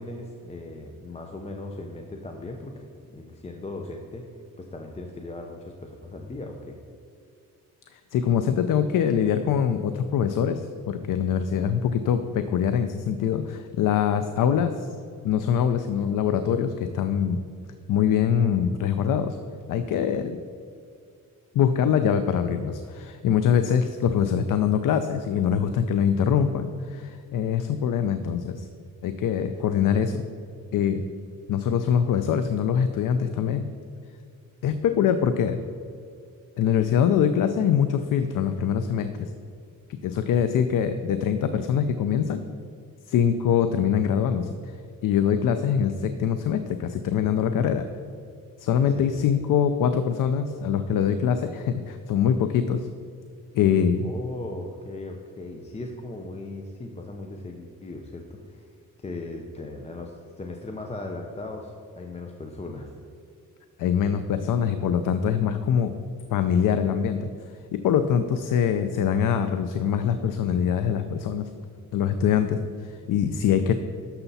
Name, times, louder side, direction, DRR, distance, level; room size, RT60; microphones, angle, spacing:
voice 1, 0.0-2.7 3.1-4.2 4.6-6.8 40.7-40.8 48.9-49.2 54.0-58.6 59.0-62.9, left 2 dB, 20° left, 2 dB, 0.6 m, -38 dB
voice 2, 7.9-14.9 15.2-17.4 17.9-19.4 19.7-20.4 21.5-28.7 29.0-30.2 30.7-31.0 31.5-33.6 34.6-35.6 36.6-39.3 40.0-42.4 43.1-44.6 45.0-47.9 48.6-52.9 53.5-54.1 63.8-65.9 66.3-67.3 67.7-71.5 71.9-73.7, left 8 dB, 70° left, 9 dB, 0.6 m, -23 dB
11.5 x 6.9 x 4.1 m, 2.4 s
wide cardioid pair, 160°, 34 cm